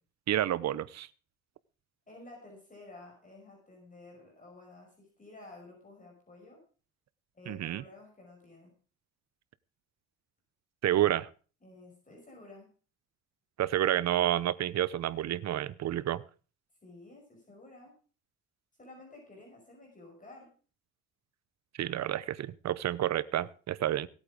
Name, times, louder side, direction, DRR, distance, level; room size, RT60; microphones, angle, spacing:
voice 1, 0.3-1.1 7.5-7.8 10.8-11.3 13.6-16.2 21.8-24.1, right 12 dB, 60° right, 17 dB, 0.8 m, -29 dB
voice 2, 2.1-6.6 7.3-8.7 11.6-12.7 16.8-17.9 18.8-20.5, left 2 dB, 25° left, -1 dB, 5.5 m, -52 dB
17.0 x 8.6 x 5.1 m, 0.37 s
cardioid pair, 90°, 30 cm